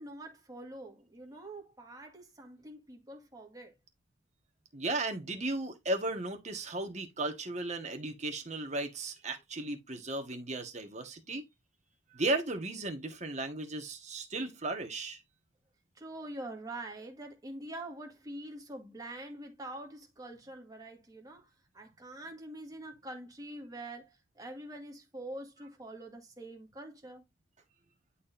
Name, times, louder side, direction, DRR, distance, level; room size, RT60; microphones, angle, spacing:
voice 1, 0.0-3.7 16.0-27.3, right 1 dB, 20° right, 1.8 m, -45 dB
voice 2, 4.7-11.4 12.1-15.2, right 2 dB, 35° right, 1.5 m, -35 dB
11.0 x 4.4 x 2.6 m
head